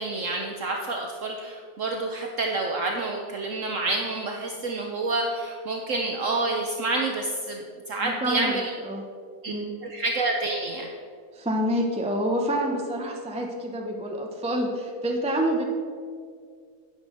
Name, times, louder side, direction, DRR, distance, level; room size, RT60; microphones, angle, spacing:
voice 1, 0.0-7.6 7.9-8.7 9.4-9.5 9.8-10.9, right 2 dB, 60° right, 1 dB, 1.1 m, -28 dB
voice 2, 8.0-8.6 8.8-9.0 9.5-9.7 11.3-15.6, equal, 5° right, 1 dB, 0.6 m, -27 dB
9.4 x 6.0 x 6.5 m, 2.1 s
omnidirectional pair, 1.7 m